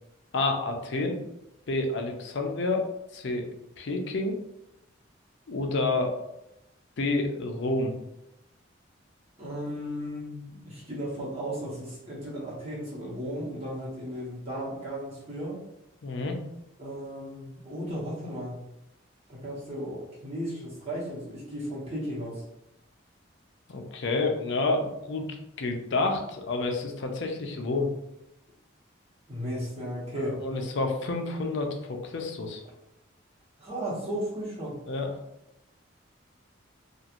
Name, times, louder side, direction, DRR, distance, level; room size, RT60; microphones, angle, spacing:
voice 1, 0.3-1.2 1.7-2.9 3.1-3.5 3.8-4.4 5.5-6.1 7.0-7.9 16.0-16.4 23.7-27.9 30.2-32.6 34.9-35.1, left 2 dB, 65° left, 3 dB, 0.5 m, -29 dB
voice 2, 9.4-15.6 16.8-18.5 19.3-22.4 29.3-30.4 33.6-34.7, equal, 30° right, -7 dB, 1.1 m, -35 dB
3.0 x 2.4 x 2.5 m, 0.86 s
head